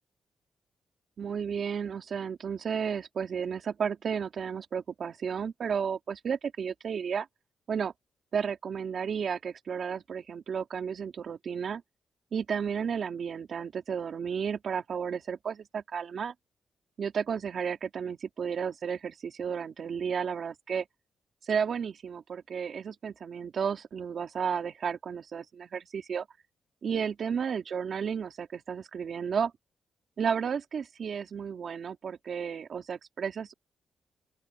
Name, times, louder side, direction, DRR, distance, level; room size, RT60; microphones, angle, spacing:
voice 1, 1.2-7.3 7.7-7.9 8.3-11.8 12.3-16.3 17.0-20.9 21.5-26.3 26.8-29.5 30.2-33.5, right 7 dB, 55° right, 2.5 m, -33 dB
open air
cardioid pair, 115°, 0 cm